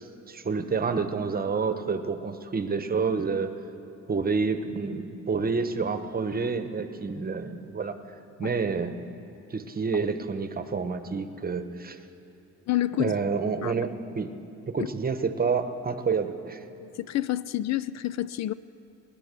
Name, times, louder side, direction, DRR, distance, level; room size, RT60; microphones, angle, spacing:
voice 1, 0.0-3.5 4.1-8.0 8.4-9.0 9.5-12.0 13.0-14.3 14.7-16.6, right 5 dB, 30° right, 9 dB, 1.0 m, -28 dB
voice 2, 12.7-13.1 13.6-13.7 16.8-18.5, left 14 dB, 60° left, 16 dB, 0.4 m, -28 dB
20.0 x 10.5 x 6.7 m, 2.7 s
cardioid pair, 90°, 30 cm